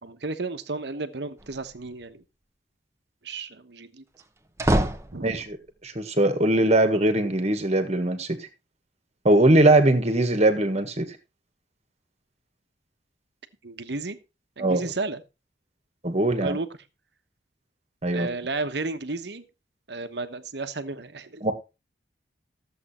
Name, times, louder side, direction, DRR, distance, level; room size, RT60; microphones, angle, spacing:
voice 1, 0.0-2.2 3.2-4.0 4.6-4.8 5.1-5.3 13.6-14.2 14.6-15.2 16.4-16.7 18.1-19.4 19.9-21.5, right 3 dB, 65° right, 1.2 m, -33 dB
sound 1, 1.4-1.9 4.2-5.7, right 1 dB, 15° right, 0.9 m, -27 dB
voice 2, 5.2-5.6 5.8-8.5 9.2-11.2 14.6-14.9 16.0-16.6 18.0-18.3 21.4-21.5, right 1 dB, 35° right, 1.7 m, -21 dB
13.5 x 7.8 x 4.4 m
head